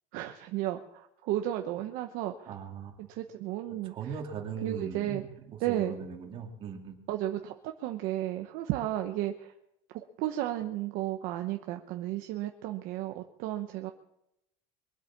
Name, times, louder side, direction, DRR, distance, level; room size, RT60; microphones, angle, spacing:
voice 1, 0.1-2.5 3.0-3.9 4.6-5.2 5.6-5.9 7.1-9.5 9.9-13.9, right 13 dB, 50° right, 6 dB, 1.0 m, -33 dB
voice 2, 2.5-2.9 3.8-7.0, right 6 dB, 30° right, 2 dB, 2.6 m, -39 dB
23.0 x 8.3 x 7.3 m, 0.84 s
cardioid pair, 175°, 18 cm